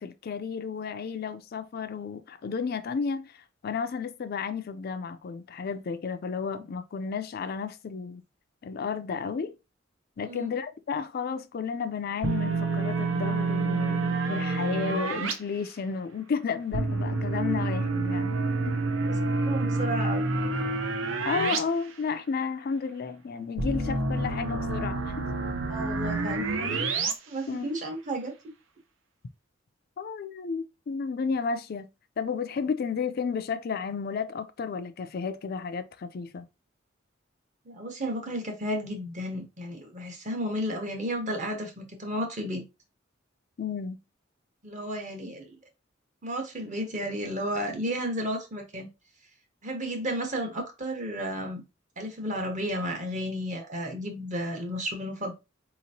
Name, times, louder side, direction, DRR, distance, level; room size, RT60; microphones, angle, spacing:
voice 1, 0.0-8.2 8.6-9.5 10.2-18.4 18.6-18.7 21.3-25.2 27.5-27.7 30.0-31.9 32.2-36.5 43.6-44.0, left 5 dB, 50° left, 0.4 m, -32 dB
sound 1, 12.2-15.3 16.7-21.6 21.9-22.0 23.6-27.1, right 3 dB, 80° right, 0.7 m, -28 dB
voice 2, 19.2-20.3 25.7-26.9 27.3-28.3 37.7-42.6 44.6-45.5 46.2-48.9 49.6-51.6 52.0-55.3, equal, 40° right, 1.0 m, -33 dB
4.2 x 2.9 x 2.7 m
head